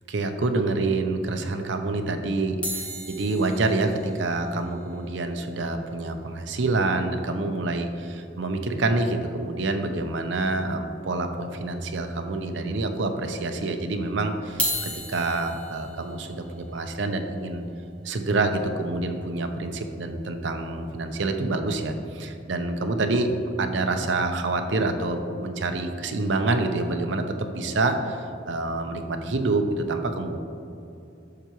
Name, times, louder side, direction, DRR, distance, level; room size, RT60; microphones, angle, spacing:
voice 1, 0.1-17.6 18.0-23.3 23.6-30.4, right 2 dB, 70° right, 6 dB, 0.7 m, -27 dB
sound 1, 2.6-7.0 7.3-7.4 7.5-7.7 8.1-8.2 9.6-9.7 10.4-10.9 11.4-11.5 12.3-12.4 14.4-20.5 21.1-21.3, left 1 dB, 5° left, 1.1 m, -37 dB
11.5 x 6.8 x 3.1 m, 2.7 s
head